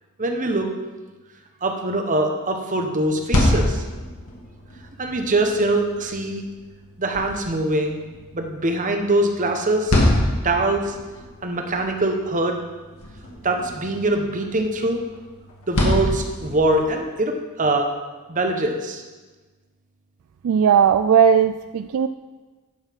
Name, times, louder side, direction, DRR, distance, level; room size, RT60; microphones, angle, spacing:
voice 1, 0.2-0.7 1.6-3.8 5.0-6.4 7.0-8.0 8.3-9.9 10.4-10.9 11.4-12.6 13.4-15.0 15.7-17.9 18.3-19.0, right 2 dB, 35° right, 4 dB, 1.0 m, -23 dB
sound 1, 3.0-17.0, left 1 dB, 80° left, 2.1 m, -27 dB
voice 2, 20.4-22.1, right 7 dB, 70° right, 10 dB, 0.3 m, -17 dB
10.5 x 5.7 x 5.9 m, 1.3 s
head